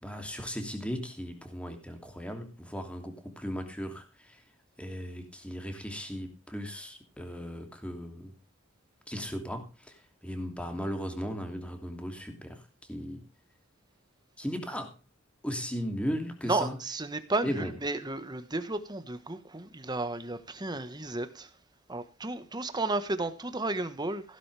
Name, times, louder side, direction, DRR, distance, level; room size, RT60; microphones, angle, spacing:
voice 1, 0.0-4.4 4.8-8.3 9.1-12.6 12.9-13.3 14.4-14.9 15.4-16.8 17.4-17.8, equal, 5° left, 2.9 m, -37 dB
voice 2, 16.5-21.5 21.9-24.2, right 2 dB, 20° right, 1.5 m, -33 dB
16.0 x 12.0 x 3.5 m
head